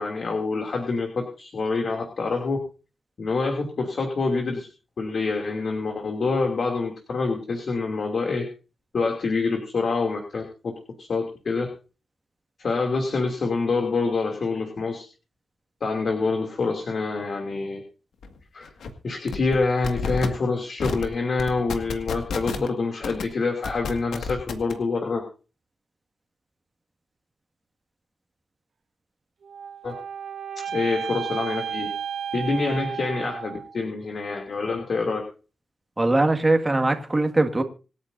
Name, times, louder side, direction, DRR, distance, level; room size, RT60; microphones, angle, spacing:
voice 1, 0.0-2.6 3.2-4.7 5.0-8.4 8.9-10.7 11.0-11.7 12.6-15.0 15.8-17.8 18.5-18.7 19.0-25.2 29.8-29.9 30.7-31.9 32.3-35.2, left 4 dB, 55° left, 2 dB, 2.8 m, -26 dB
sound 1, 18.2-18.3 18.6-18.9 19.3-19.6 19.8-20.3 20.8-21.0 21.4-22.7 23.0-23.2 23.6-24.7, left 5 dB, 90° left, 2.0 m, -29 dB
sound 2, 29.4-33.8, right 8 dB, 80° right, 1.4 m, -33 dB
voice 2, 36.0-37.6, right 2 dB, 20° right, 5 dB, 2.0 m, -21 dB
26.0 x 9.6 x 2.7 m, 0.34 s
cardioid pair, 100°, 0 cm